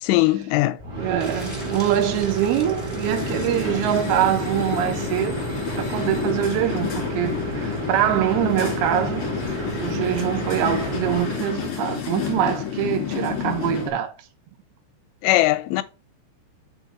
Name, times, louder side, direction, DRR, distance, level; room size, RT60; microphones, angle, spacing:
voice 1, 0.0-0.8 15.2-15.8, left 17 dB, 85° left, 2.9 m, -20 dB
sound 1, 0.8-11.5, right 1 dB, 40° right, 1.3 m, -31 dB
voice 2, 1.0-5.4 5.8-9.2 9.5-14.1, right 11 dB, 80° right, 2.3 m, -24 dB
sound 2, 1.2-4.4, left 1 dB, 10° left, 1.0 m, -43 dB
sound 3, 3.0-13.9, left 8 dB, 55° left, 1.6 m, -30 dB
6.5 x 4.5 x 6.0 m
omnidirectional pair, 5.8 m